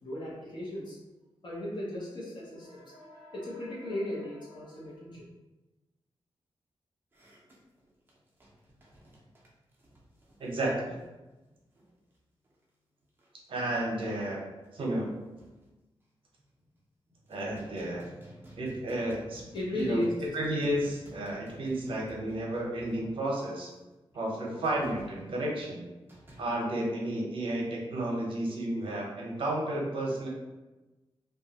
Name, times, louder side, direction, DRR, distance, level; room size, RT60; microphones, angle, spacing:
voice 1, 0.0-1.0 1.4-5.2 19.5-20.1, left 1 dB, 50° left, -6 dB, 0.7 m, -36 dB
sound 1, 7.1-12.2 12.4-12.6 13.0-13.4 13.8-13.9 14.3-14.4 14.6-15.7 16.3-16.8 17.1-23.5 24.6-25.4 26.1-26.5, right 1 dB, 20° right, 0.5 m, -53 dB
voice 2, 10.4-10.9 13.5-14.4 14.7-15.1 17.3-18.0 18.6-19.4 19.7-20.1 20.3-23.7 24.1-25.9 26.4-30.3, right 1 dB, 65° right, -2 dB, 0.7 m, -32 dB
2.8 x 2.3 x 2.7 m, 1.1 s
wide cardioid pair, 175°, 10 cm